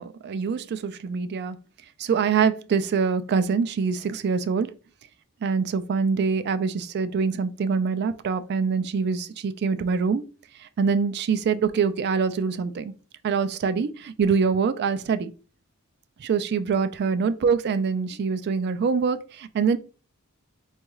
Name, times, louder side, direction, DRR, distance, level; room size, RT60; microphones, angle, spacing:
voice 1, 0.0-1.6 2.0-4.7 5.4-10.2 10.6-12.9 13.2-15.3 16.2-19.8, right 5 dB, 50° right, 0.3 m, -24 dB
4.4 x 2.3 x 3.0 m
head